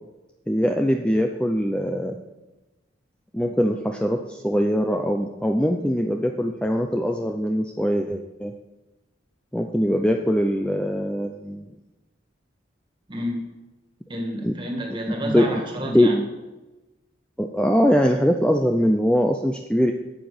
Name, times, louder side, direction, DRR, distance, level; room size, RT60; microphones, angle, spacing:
voice 1, 0.5-2.2 3.3-8.5 9.5-11.6 14.4-14.5 15.2-15.6 15.9-16.1 17.4-19.9, equal, 5° left, 3 dB, 0.5 m, -22 dB
voice 2, 13.1-13.5 14.1-16.2, equal, 25° right, 1 dB, 2.1 m, -30 dB
9.1 x 7.9 x 6.9 m, 1.1 s
head